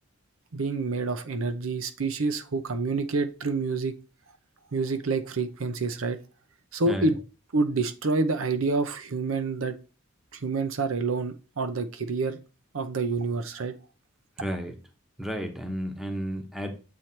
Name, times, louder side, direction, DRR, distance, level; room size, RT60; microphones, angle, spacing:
voice 1, 0.5-3.9 4.7-6.2 6.7-7.2 7.5-9.8 10.3-12.4 12.7-13.7, right 3 dB, 75° right, 0.7 m, -27 dB
voice 2, 14.4-14.8 15.2-16.8, equal, ahead, 0.8 m, -32 dB
7.4 x 3.2 x 4.3 m
head